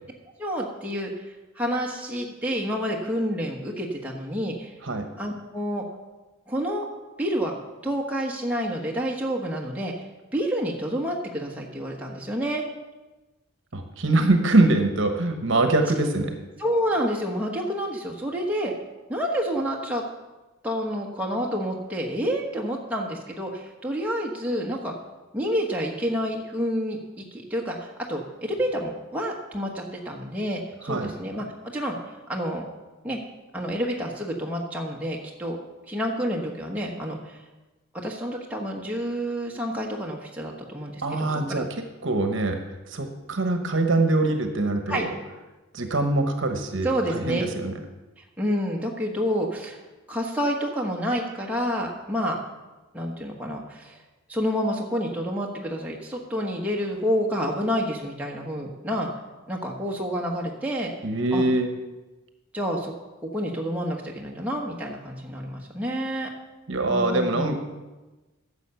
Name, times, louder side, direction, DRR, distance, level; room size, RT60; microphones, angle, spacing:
voice 1, 0.4-4.7 5.2-5.8 6.5-6.9 7.2-7.5 7.8-10.1 10.3-12.6 16.6-18.7 19.1-20.0 20.6-24.9 25.3-31.4 31.7-32.0 32.3-32.7 33.0-33.2 33.5-35.6 35.9-37.4 37.9-41.6 44.9-45.0 46.8-47.4 48.2-49.8 50.1-52.4 52.9-54.0 54.3-59.1 59.5-60.9 61.3-61.4 62.5-62.9 63.2-66.3 66.9-67.5, equal, 5° right, -2 dB, 1.2 m, -29 dB
voice 2, 13.7-16.4 30.9-31.1 41.0-41.7 42.0-42.6 42.9-45.1 45.7-47.8 61.0-61.7 66.7-67.6, right 2 dB, 60° right, 6 dB, 1.1 m, -23 dB
10.5 x 7.1 x 6.8 m, 1.2 s
head